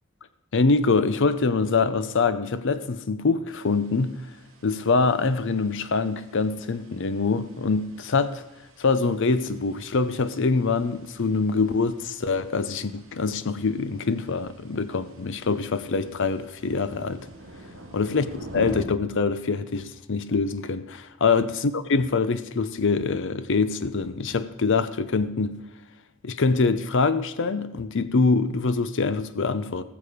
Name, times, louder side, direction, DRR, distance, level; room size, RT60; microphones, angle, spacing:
voice 1, 0.5-4.2 4.6-8.4 8.8-17.3 17.9-18.3 18.5-25.5 26.2-29.8, left 4 dB, 55° left, 0.6 m, -24 dB
sound 1, 3.5-18.8, right 1 dB, 65° right, 2.6 m, -46 dB
19.5 x 6.9 x 5.1 m
head